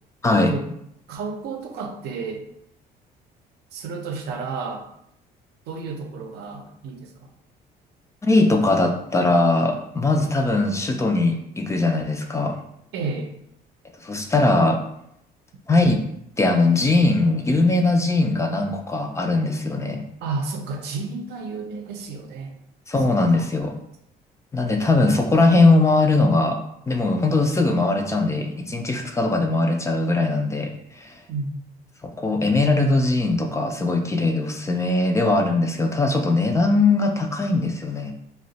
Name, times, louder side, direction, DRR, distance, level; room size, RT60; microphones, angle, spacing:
voice 1, 0.3-0.7 1.1-2.4 3.7-4.8 5.7-7.3 12.9-13.3 20.2-22.5 23.4-23.5 31.3-31.6, right 4 dB, 75° right, 3 dB, 0.6 m, -31 dB
voice 2, 8.2-12.5 14.0-14.8 15.7-16.0 16.4-20.0 22.9-23.8 24.5-26.6 26.9-31.2 32.2-38.1, left 2 dB, 15° left, 3 dB, 0.4 m, -20 dB
2.7 x 2.1 x 3.9 m, 0.75 s
cardioid pair, 110°, 17 cm